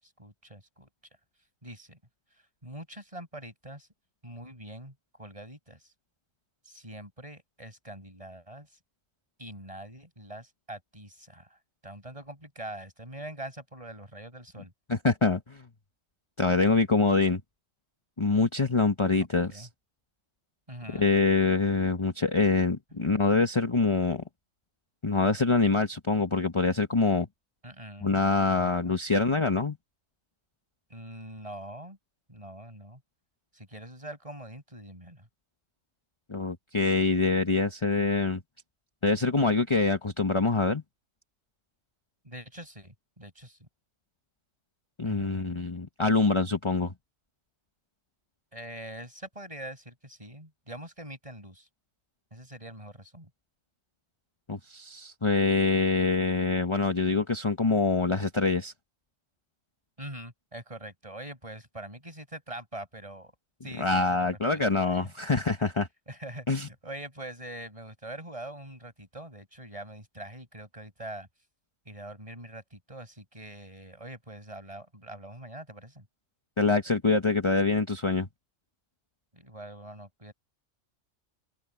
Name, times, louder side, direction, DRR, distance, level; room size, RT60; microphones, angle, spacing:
voice 1, 0.0-0.9 1.6-2.0 2.6-3.9 4.2-5.8 6.6-8.7 9.4-11.6 11.8-14.7 19.5-19.7 20.7-21.1 27.6-29.0 30.9-32.0 32.3-33.0 33.5-35.3 42.2-43.7 45.0-45.6 48.5-51.7 52.3-53.3 60.0-63.3 63.6-65.0 66.1-71.3 71.9-76.1 79.3-80.3, right 1 dB, 25° right, 7.0 m, -44 dB
voice 2, 14.9-15.6 16.4-17.4 18.2-19.7 20.9-24.2 25.0-27.3 28.0-29.8 36.3-38.4 39.0-40.8 45.0-46.9 54.5-58.7 63.8-65.9 66.5-66.7 76.6-78.3, left 3 dB, 25° left, 1.2 m, -25 dB
open air
omnidirectional pair, 1.3 m